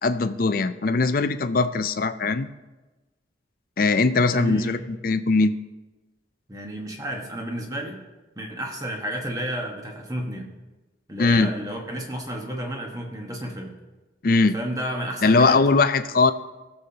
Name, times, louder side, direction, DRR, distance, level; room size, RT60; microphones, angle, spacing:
voice 1, 0.0-2.5 3.8-5.6 11.2-11.5 14.2-14.6 15.2-16.3, left 3 dB, 50° left, 12 dB, 0.4 m, -20 dB
voice 2, 4.3-4.8 6.5-8.0 8.4-10.5 11.1-13.7 14.4-15.6, right 1 dB, 20° right, 1 dB, 1.2 m, -31 dB
17.0 x 7.0 x 2.8 m, 1.1 s
head